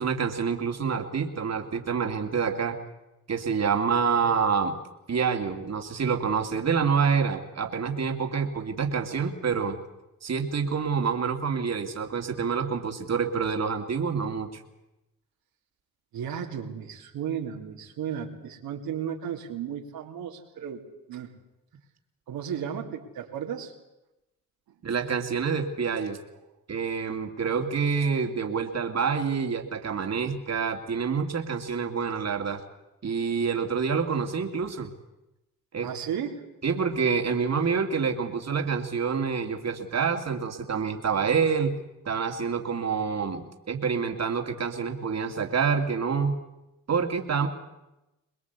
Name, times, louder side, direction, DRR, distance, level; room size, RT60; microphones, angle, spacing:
voice 1, 0.0-2.8 3.3-4.7 5.1-9.8 10.2-14.6 24.8-26.2 26.7-32.6 33.0-34.9 35.7-35.9 36.6-41.7 42.0-46.4 46.9-47.5, right 6 dB, 45° right, 4 dB, 2.7 m, -27 dB
voice 2, 16.1-20.8 21.1-21.3 22.3-23.7 35.8-36.5, right 8 dB, 80° right, 1 dB, 3.0 m, -34 dB
23.5 x 21.0 x 8.3 m, 0.95 s
supercardioid pair, 60°, 36 cm